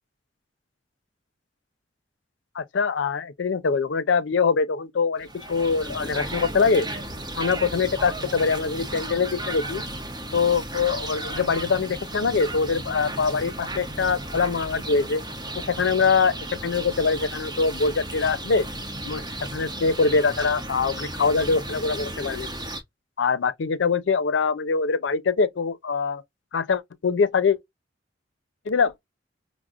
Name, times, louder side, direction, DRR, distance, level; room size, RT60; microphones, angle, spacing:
voice 1, 2.6-6.9 7.4-9.8 10.3-15.2 15.5-16.4 16.6-18.7 19.1-19.2 19.5-22.5 23.2-26.2 26.5-27.6 28.7-28.9, left 5 dB, 70° left, 0.5 m, -23 dB
sound 1, 5.2-22.8, right 1 dB, 25° right, 0.9 m, -34 dB
5.8 x 2.0 x 2.4 m
head